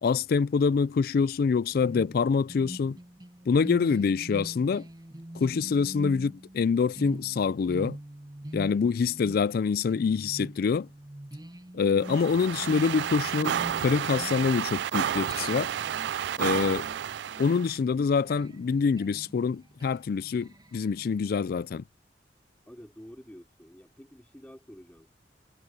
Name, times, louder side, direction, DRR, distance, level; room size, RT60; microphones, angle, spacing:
voice 1, 0.0-3.0 3.5-4.9 5.3-8.0 8.5-10.9 11.7-15.7 16.4-16.9 17.4-21.8, left 5 dB, 60° left, 0.3 m, -26 dB
sound 1, 1.7-14.8 15.3-21.2, right 1 dB, 25° right, 0.9 m, -44 dB
sound 2, 12.0-17.7, right 9 dB, 70° right, 0.3 m, -31 dB
voice 2, 22.7-25.1, equal, 10° left, 3.2 m, -49 dB
head